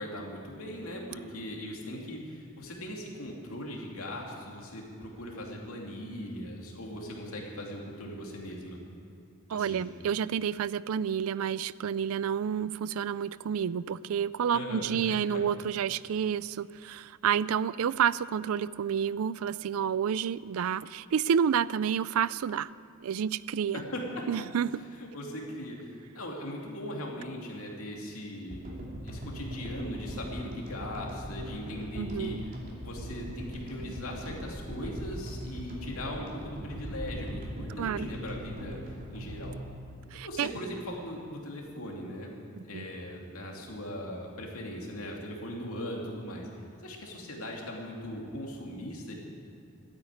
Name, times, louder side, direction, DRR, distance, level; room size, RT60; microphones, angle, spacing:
voice 1, 0.0-8.8 9.5-9.8 14.5-15.4 23.7-24.2 25.0-28.7 29.0-32.5 32.8-39.6 40.1-42.3 42.6-46.5 46.8-49.2, left 1 dB, 70° left, -1 dB, 2.8 m, -39 dB
voice 2, 9.5-22.7 23.0-23.8 24.3-24.8 32.0-32.4 37.8-38.1 40.1-40.5 42.5-42.8, right 8 dB, 70° right, 19 dB, 0.4 m, -29 dB
sound 1, 28.5-40.8, equal, 40° right, 2.8 m, -40 dB
13.0 x 9.3 x 9.6 m, 2.7 s
head